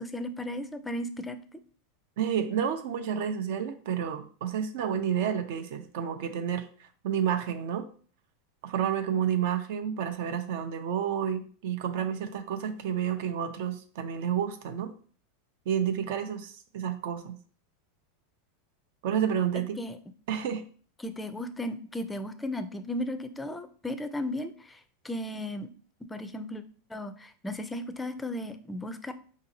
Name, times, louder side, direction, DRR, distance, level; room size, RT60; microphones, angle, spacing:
voice 1, 0.0-1.6 19.8-20.0 21.0-25.7 26.1-26.6 26.9-29.1, left 1 dB, 10° left, 10 dB, 0.4 m, -35 dB
voice 2, 2.2-7.9 8.6-14.9 15.7-17.4 19.0-19.8 20.3-20.6, right 8 dB, 70° right, 7 dB, 0.5 m, -30 dB
4.9 x 2.7 x 2.7 m, 0.43 s
supercardioid pair, 120°, 0 cm